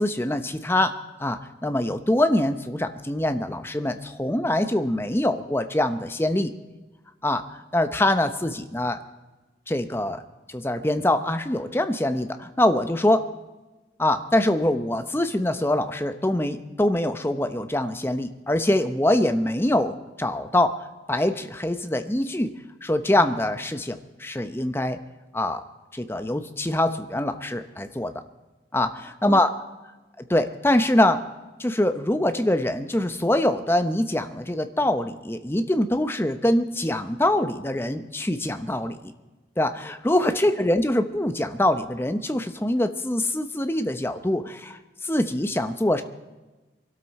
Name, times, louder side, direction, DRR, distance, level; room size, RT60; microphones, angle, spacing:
voice 1, 0.0-6.5 7.2-9.0 9.7-10.2 10.5-13.3 14.0-22.5 22.8-25.0 25.3-25.6 25.9-28.1 28.7-29.5 30.2-31.2 31.6-39.0 39.6-46.0, left 1 dB, 15° left, 9 dB, 0.8 m, -24 dB
23.0 x 12.5 x 4.2 m, 1.1 s
head